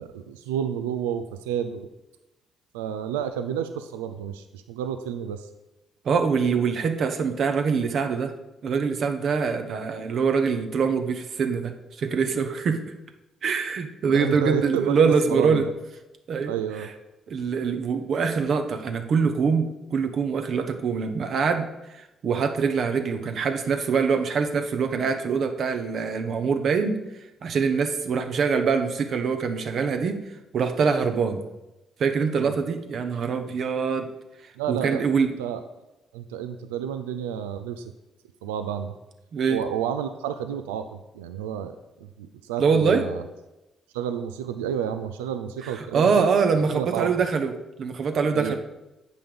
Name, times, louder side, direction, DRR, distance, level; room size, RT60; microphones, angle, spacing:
voice 1, 0.0-1.9 2.7-5.5 14.1-15.7 16.5-16.9 32.4-32.5 34.6-35.0 35.4-35.6 36.1-37.9 38.4-38.9 39.5-40.9 41.1-41.8 42.2-43.2 43.9-46.3 46.7-47.1 48.3-48.6, right 9 dB, 90° right, 9 dB, 0.4 m, -30 dB
voice 2, 6.0-8.3 8.6-12.8 13.4-15.7 16.3-16.5 17.3-27.0 27.4-30.2 30.5-31.4 32.0-34.1 34.7-35.3 39.3-39.6 42.6-43.0 45.6-47.5 47.8-48.6, right 5 dB, 60° right, 7 dB, 1.0 m, -24 dB
8.0 x 5.6 x 5.1 m, 0.98 s
hypercardioid pair, 50°, 0 cm